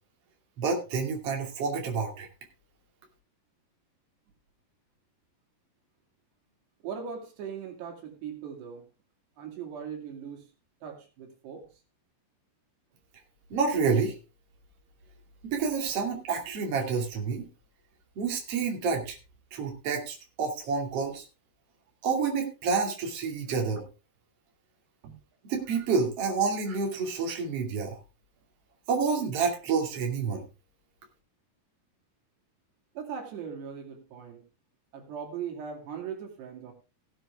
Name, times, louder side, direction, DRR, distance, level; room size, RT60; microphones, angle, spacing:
voice 1, 0.6-2.3 13.5-14.1 15.4-17.5 18.2-19.2 19.5-21.2 22.0-23.8 25.4-28.0 28.9-30.4, right 5 dB, 40° right, 1 dB, 3.2 m, -28 dB
voice 2, 6.8-8.8 9.4-10.4 10.8-11.7 25.0-25.1 32.9-34.4 34.9-36.7, right 7 dB, 90° right, 1 dB, 4.7 m, -39 dB
17.5 x 7.9 x 3.6 m, 0.31 s
omnidirectional pair, 4.7 m